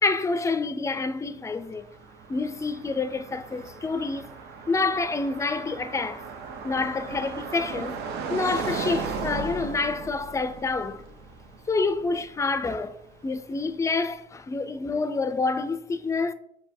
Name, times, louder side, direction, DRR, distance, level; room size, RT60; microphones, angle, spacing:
voice 1, 0.0-1.9 2.3-4.3 4.7-6.2 6.6-8.0 8.3-11.0 11.7-13.0 13.2-16.3, left 3 dB, 20° left, 0.3 m, -27 dB
Car passing by, 1.3-13.4, right 5 dB, 80° right, 0.7 m, -37 dB
6.9 x 2.6 x 2.6 m
cardioid pair, 110°, 17 cm